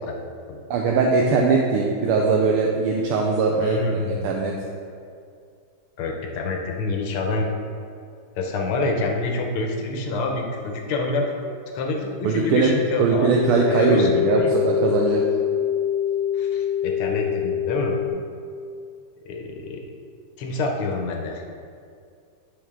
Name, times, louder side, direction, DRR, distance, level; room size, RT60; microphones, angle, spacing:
voice 1, 0.0-0.6 3.6-4.3 6.0-7.5 8.4-11.3 11.7-13.3 13.7-14.6 16.3-18.0 19.3-19.9 20.4-21.4, left 3 dB, 80° left, 2 dB, 1.7 m, -27 dB
voice 2, 0.7-4.5 12.2-12.7 13.0-15.2, right 4 dB, 85° right, 0 dB, 1.6 m, -20 dB
sound 1, 13.1-18.1, left 9 dB, 45° right, 1.2 m, -24 dB
11.0 x 4.8 x 3.6 m, 2.3 s
omnidirectional pair, 2.4 m